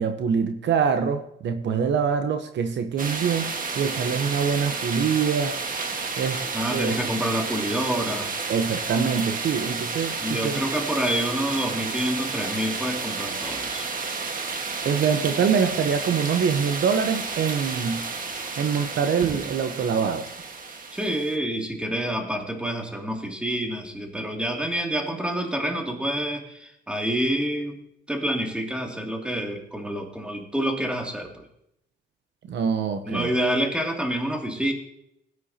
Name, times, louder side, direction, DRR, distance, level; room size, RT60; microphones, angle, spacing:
voice 1, 0.0-3.5 3.8-5.6 6.2-6.4 6.7-6.9 8.5-10.6 14.8-18.1 18.6-20.3 32.5-33.3, right 6 dB, 65° right, 8 dB, 0.9 m, -24 dB
sound 1, 3.0-21.4, right 4 dB, 45° right, 1.6 m, -31 dB
voice 2, 6.5-8.3 10.2-13.9 20.9-27.8 28.1-31.5 33.0-34.7, right 1 dB, 5° right, 1 dB, 2.6 m, -27 dB
17.5 x 9.7 x 2.9 m, 0.75 s
cardioid pair, 90°, 20 cm